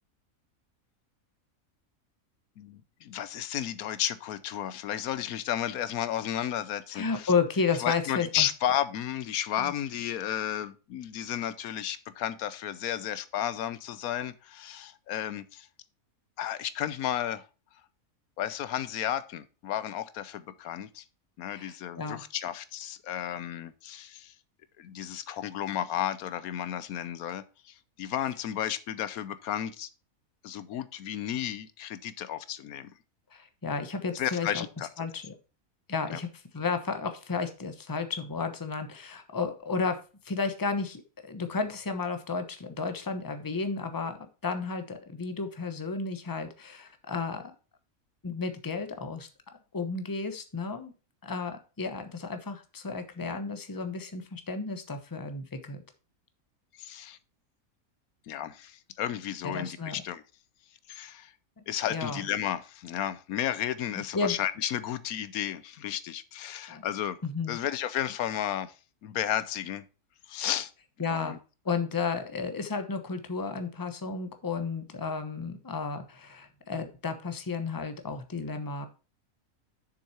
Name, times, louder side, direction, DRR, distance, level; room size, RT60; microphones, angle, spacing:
voice 1, 2.6-7.3 7.8-15.7 16.4-17.4 18.4-21.0 21.4-24.3 24.8-29.9 30.4-32.9 34.1-35.1 36.1-36.2 56.8-57.2 58.3-60.2 60.9-61.3 61.7-67.2 67.5-68.7 69.0-69.8 70.3-70.7 71.1-71.4, left 11 dB, 85° left, 15 dB, 1.2 m, -33 dB
voice 2, 6.9-8.5 9.6-9.7 21.5-22.2 33.3-34.6 35.0-35.3 35.9-36.3 36.5-44.2 44.4-47.5 48.2-49.3 49.7-50.9 51.2-55.8 59.4-60.0 61.9-62.2 64.1-64.4 66.7-66.8 67.2-67.6 71.0-71.4 71.6-78.9, left 4 dB, 15° left, 8 dB, 0.8 m, -32 dB
6.9 x 6.3 x 4.2 m, 0.33 s
omnidirectional pair, 1.5 m